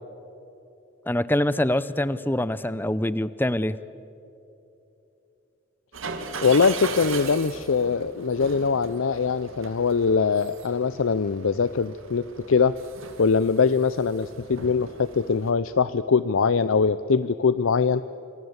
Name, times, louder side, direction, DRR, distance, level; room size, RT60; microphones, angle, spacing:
voice 1, 1.1-3.8, left 1 dB, 10° left, 15 dB, 0.6 m, -24 dB
sound 1, 5.9-15.5, right 4 dB, 75° right, 2.3 m, -39 dB
voice 2, 6.4-12.7 13.2-18.0, left 5 dB, 75° left, 15 dB, 0.5 m, -22 dB
27.5 x 26.5 x 8.1 m, 2.9 s
head